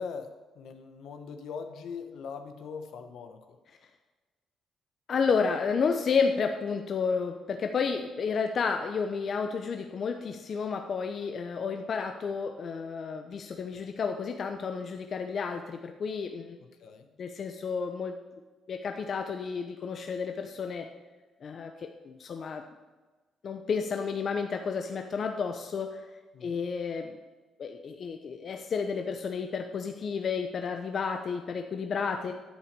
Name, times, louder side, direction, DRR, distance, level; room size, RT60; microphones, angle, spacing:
voice 1, 0.0-3.6 16.8-17.1 26.3-26.6, left 5 dB, 75° left, 6 dB, 1.3 m, -41 dB
voice 2, 5.1-16.6 17.2-18.2 18.7-20.9 21.4-22.7 23.4-26.1 26.4-27.2 27.6-32.3, left 5 dB, 50° left, 5 dB, 0.8 m, -31 dB
10.5 x 8.6 x 6.8 m, 1.3 s
cardioid pair, 90°, 0 cm